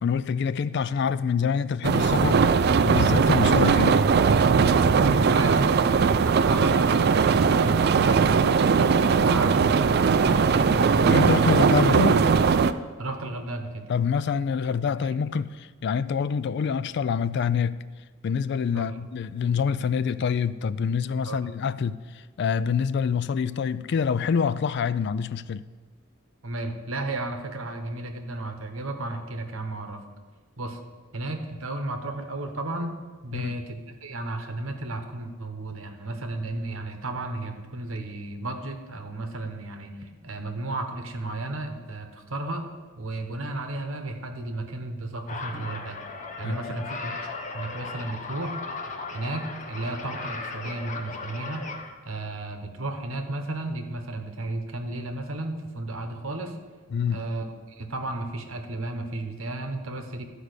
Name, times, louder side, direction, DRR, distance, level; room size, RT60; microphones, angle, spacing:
voice 1, 0.0-2.4 2.8-4.1 11.1-12.3 13.9-17.8 18.2-22.0 22.4-25.6 33.3-33.6 46.4-46.8 56.9-57.2, left 6 dB, 55° left, 0.3 m, -26 dB
sound 1, 1.8-12.7, right 5 dB, 50° right, 0.3 m, -20 dB
voice 2, 5.1-5.9 6.2-11.6 13.0-13.8 15.0-15.2 18.7-19.0 21.2-21.5 26.4-30.0 30.6-30.8 31.1-32.9 33.2-42.6 43.0-46.0 46.4-48.6 49.1-51.6 52.0-56.5 57.1-60.3, right 2 dB, 70° right, 1.1 m, -33 dB
sound 2, 45.3-51.9, left 3 dB, 35° left, 0.9 m, -36 dB
12.5 x 5.0 x 6.6 m
head